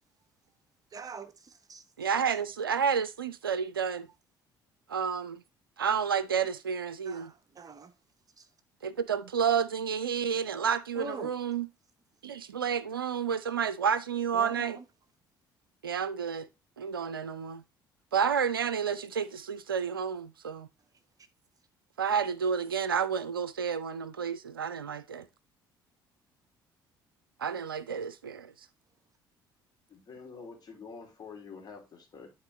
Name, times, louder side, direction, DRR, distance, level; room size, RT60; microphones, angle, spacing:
voice 1, 0.9-1.8 7.1-7.9 8.4-8.5 11.0-11.4 14.3-14.8, right 4 dB, 30° right, 0.8 m, -43 dB
voice 2, 2.0-4.1 4.9-5.4 5.8-7.3 8.8-11.7 12.2-14.8 15.8-16.5 16.8-17.6 18.1-20.7 22.0-25.3 27.4-28.5, right 7 dB, 85° right, 0.4 m, -30 dB
voice 3, 29.9-32.3, left 5 dB, 35° left, 3.1 m, -47 dB
11.0 x 4.2 x 3.2 m
figure-of-eight pair, 55°, 12 cm